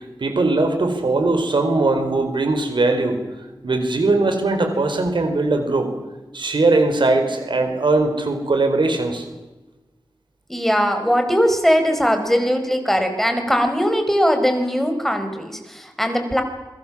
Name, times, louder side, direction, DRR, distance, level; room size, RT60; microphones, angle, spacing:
voice 1, 0.2-3.2 3.6-5.9 6.3-9.2, right 2 dB, 85° right, 6 dB, 4.3 m, -20 dB
voice 2, 10.5-16.4, equal, 5° left, 6 dB, 4.7 m, -20 dB
27.5 x 22.5 x 7.4 m, 1.1 s
wide cardioid pair, 70°, 8 cm